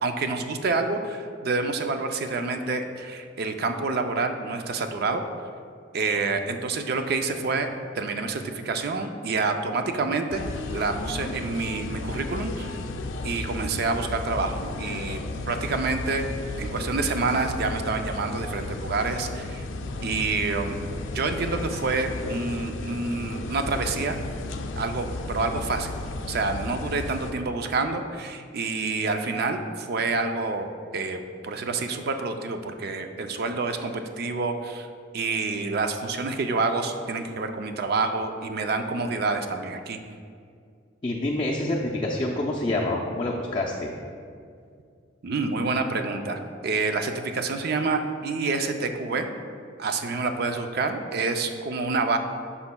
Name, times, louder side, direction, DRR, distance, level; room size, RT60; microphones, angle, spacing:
voice 1, 0.0-5.2 5.9-7.7 7.9-10.4 10.7-12.8 13.2-16.3 16.6-19.6 20.0-24.2 24.8-26.0 26.3-34.9 35.1-40.0 45.2-49.3 49.8-52.2, right 3 dB, 55° right, 6 dB, 0.5 m, -28 dB
sound 1, 10.3-27.3, left 2 dB, 90° left, 0.4 m, -34 dB
voice 2, 41.0-43.9, left 1 dB, 25° left, -2 dB, 0.5 m, -27 dB
9.5 x 5.7 x 2.2 m, 2.3 s
head